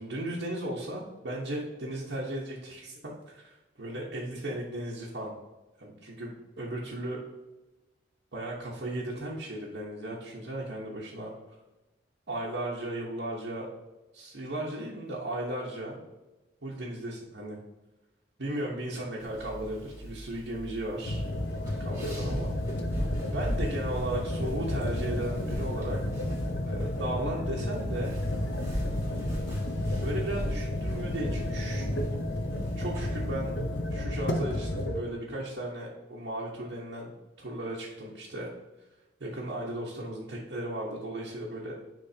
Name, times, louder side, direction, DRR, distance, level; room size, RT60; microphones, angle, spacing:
voice 1, 0.0-5.3 5.8-7.2 8.3-11.3 12.3-13.7 14.1-16.0 16.6-17.6 18.4-21.2 21.6-22.5 23.3-26.0 26.6-28.2 30.0-31.9 32.8-33.5 33.9-37.1 37.4-38.5 39.2-41.8, right 1 dB, 60° right, -5 dB, 1.1 m, -36 dB
sound 1, 19.2-33.9, equal, 15° right, 1.5 m, -40 dB
sound 2, 21.0-35.0, left 1 dB, 65° left, 0.7 m, -32 dB
10.0 x 3.5 x 2.8 m, 1.1 s
head